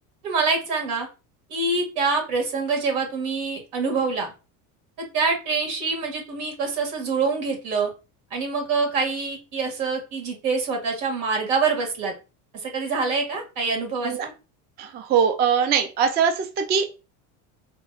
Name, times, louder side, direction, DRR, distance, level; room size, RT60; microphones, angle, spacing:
voice 1, 0.2-1.1 1.5-4.3 5.0-7.9 8.3-12.1 12.5-14.3, right 4 dB, 80° right, 2 dB, 2.0 m, -25 dB
voice 2, 14.8-16.9, right 7 dB, 25° right, 6 dB, 0.4 m, -22 dB
4.2 x 3.0 x 2.3 m, 0.30 s
cardioid pair, 140°, 39 cm